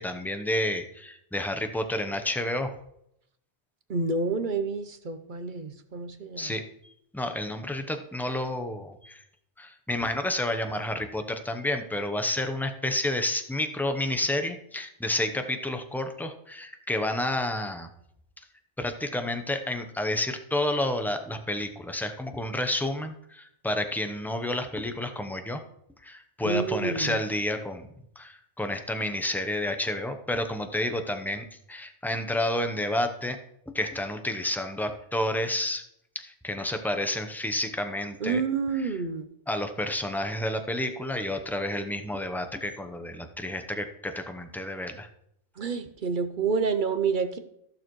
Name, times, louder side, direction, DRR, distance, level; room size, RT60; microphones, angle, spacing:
voice 1, 0.0-2.7 6.4-6.6 7.1-9.2 9.6-17.9 18.8-25.6 26.0-27.9 28.2-33.4 33.7-35.8 36.1-38.4 39.5-45.1, left 1 dB, ahead, 6 dB, 0.6 m, -30 dB
voice 2, 3.9-6.6 26.4-27.2 38.2-39.2 45.6-47.4, right 4 dB, 50° right, 9 dB, 0.8 m, -28 dB
14.5 x 6.7 x 3.1 m, 0.75 s
omnidirectional pair, 1.2 m